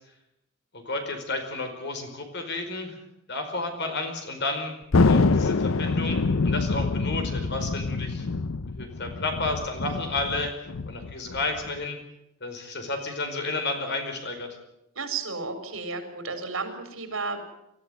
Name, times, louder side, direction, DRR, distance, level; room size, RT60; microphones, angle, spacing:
voice 1, 0.7-3.0 3.3-4.8 5.0-8.3 8.8-12.0 12.4-14.6, left 2 dB, 55° left, 5 dB, 4.9 m, -32 dB
Thunder, 4.9-11.8, left 3 dB, 85° left, 0.7 m, -25 dB
voice 2, 15.0-17.4, right 4 dB, 75° right, 7 dB, 4.6 m, -33 dB
25.0 x 14.5 x 9.3 m, 0.82 s
head